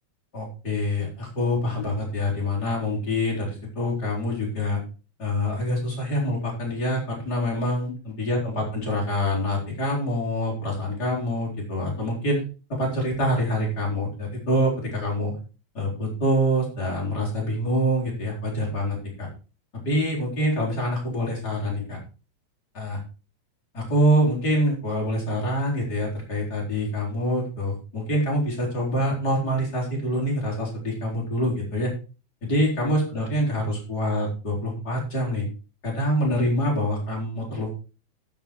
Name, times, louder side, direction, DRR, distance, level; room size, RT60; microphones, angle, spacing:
voice 1, 0.3-4.8 5.2-12.4 12.7-15.3 15.7-19.3 19.8-22.0 22.7-23.0 23.7-31.9 32.4-35.5 35.8-37.8, equal, 30° left, -3 dB, 4.5 m, -25 dB
12.5 x 7.2 x 4.6 m, 0.33 s
omnidirectional pair, 3.4 m